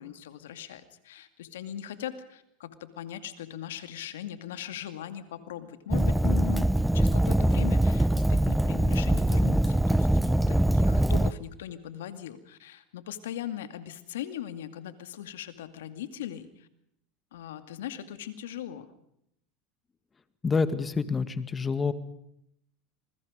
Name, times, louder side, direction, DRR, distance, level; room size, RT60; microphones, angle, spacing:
voice 1, 0.0-6.7 6.9-16.7 17.3-18.9, left 10 dB, 85° left, 10 dB, 2.3 m, -39 dB
Fire, 5.9-11.3, right 1 dB, 5° right, 0.9 m, -23 dB
voice 2, 20.4-21.9, left 4 dB, 25° left, 12 dB, 2.0 m, -27 dB
27.5 x 21.0 x 5.2 m, 0.75 s
hypercardioid pair, 95°, 0 cm